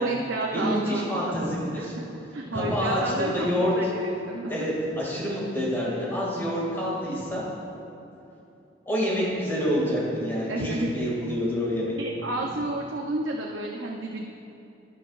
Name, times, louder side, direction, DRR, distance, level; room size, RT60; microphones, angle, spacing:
voice 1, 0.0-1.2 1.8-2.0 2.3-4.5 6.1-6.2 10.5-10.9 12.0-14.2, right 2 dB, 90° right, -1 dB, 0.7 m, -30 dB
voice 2, 0.5-1.9 2.5-3.7 4.5-7.4 8.9-11.9 12.4-12.5, equal, 10° left, -6 dB, 2.3 m, -27 dB
11.5 x 11.0 x 2.5 m, 2.8 s
head